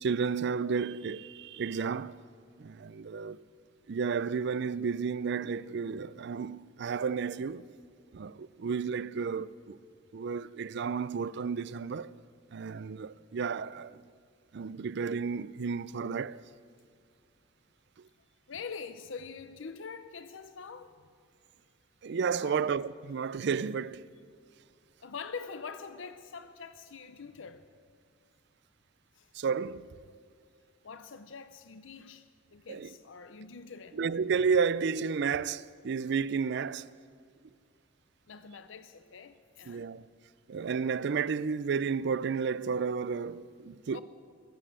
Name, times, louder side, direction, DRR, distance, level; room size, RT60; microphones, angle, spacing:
voice 1, 0.0-2.1 2.6-3.4 3.9-7.6 8.1-9.8 10.1-12.1 12.5-14.0 14.5-16.4 22.0-24.1 29.3-29.8 32.7-32.9 34.0-36.9 39.7-40.1 40.5-44.0, right 5 dB, 60° right, 0.4 m, -32 dB
voice 2, 18.5-20.9 22.3-22.7 25.0-27.7 29.1-29.3 30.8-34.0 38.3-39.9 43.9-44.0, left 5 dB, 70° left, 0.6 m, -44 dB
20.5 x 8.8 x 7.5 m
head